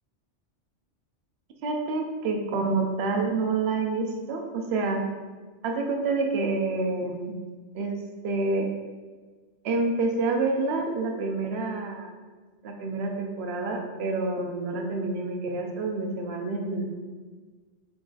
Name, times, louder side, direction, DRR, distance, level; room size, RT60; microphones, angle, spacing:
voice 1, 1.6-5.0 5.6-7.4 7.7-8.0 8.2-8.7 9.6-12.1 12.6-16.9, right 3 dB, 65° right, 3 dB, 0.8 m, -28 dB
3.8 x 3.8 x 2.4 m, 1.4 s
omnidirectional pair, 1.2 m